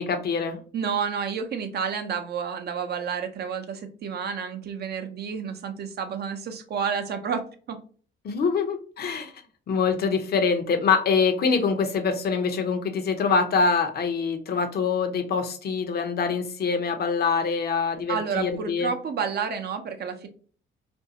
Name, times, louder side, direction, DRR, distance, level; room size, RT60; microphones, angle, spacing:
voice 1, 0.0-0.6 8.2-9.3 9.7-18.9, left 5 dB, 55° left, 6 dB, 0.6 m, -24 dB
voice 2, 0.7-7.8 18.1-20.3, right 6 dB, 55° right, 7 dB, 0.5 m, -30 dB
2.5 x 2.3 x 2.7 m, 0.42 s
cardioid pair, 90°, 20 cm